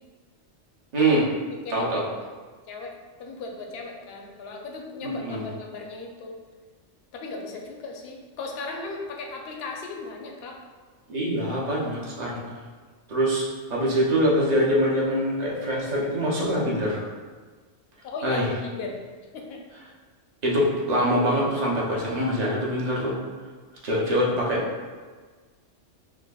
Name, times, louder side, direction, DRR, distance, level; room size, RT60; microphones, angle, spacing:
voice 1, 0.9-1.3 1.7-2.1 5.0-5.5 11.1-12.4 13.1-17.1 18.2-18.5 20.4-23.2 23.8-24.9, equal, 40° right, -4 dB, 0.7 m, -24 dB
voice 2, 1.6-2.2 2.7-6.4 7.1-10.6 18.0-19.0 19.3-19.6 22.6-22.9, left 3 dB, 65° left, 1 dB, 0.7 m, -37 dB
5.8 x 2.1 x 2.3 m, 1.4 s
omnidirectional pair, 1.2 m